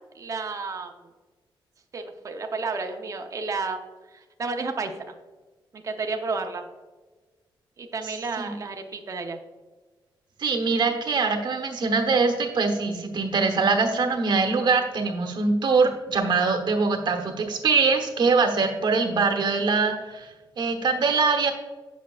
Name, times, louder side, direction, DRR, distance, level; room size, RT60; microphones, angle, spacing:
voice 1, 0.1-0.9 1.9-3.8 4.1-5.1 5.7-6.6 7.8-9.4, right 4 dB, 40° right, 4 dB, 0.7 m, -31 dB
voice 2, 10.4-21.5, right 4 dB, 60° right, 5 dB, 1.1 m, -23 dB
8.3 x 6.0 x 2.4 m, 1.3 s
wide cardioid pair, 125°, 9 cm